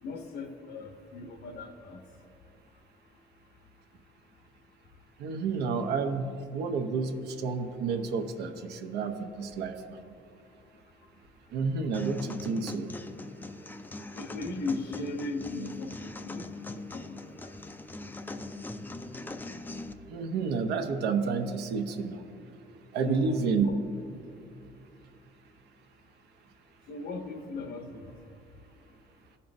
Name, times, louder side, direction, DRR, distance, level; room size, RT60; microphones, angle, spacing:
voice 1, 0.0-2.0 14.1-16.6 16.9-17.6 23.0-23.8 26.9-28.1, left 3 dB, 75° left, 5 dB, 0.9 m, -38 dB
voice 2, 5.2-10.0 11.5-12.9 20.1-22.2 22.9-23.7, right 5 dB, 85° right, 6 dB, 0.7 m, -30 dB
sound 1, 11.9-19.9, left 2 dB, 10° left, 0.4 m, -41 dB
15.0 x 5.6 x 2.6 m, 2.7 s
cardioid pair, 110°, 17 cm